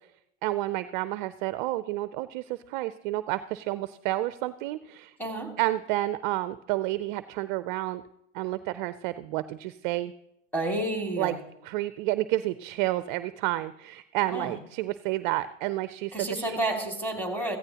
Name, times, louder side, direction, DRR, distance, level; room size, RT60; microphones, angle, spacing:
voice 1, 0.4-5.1 5.6-8.0 8.3-10.1 11.2-11.3 11.6-16.6, right 16 dB, 40° right, 14 dB, 0.4 m, -30 dB
voice 2, 5.2-5.6 10.5-11.4 14.3-14.5 16.1-17.6, right 1 dB, 5° left, 2 dB, 2.3 m, -30 dB
15.5 x 15.0 x 2.9 m, 0.85 s
hypercardioid pair, 120°, 39 cm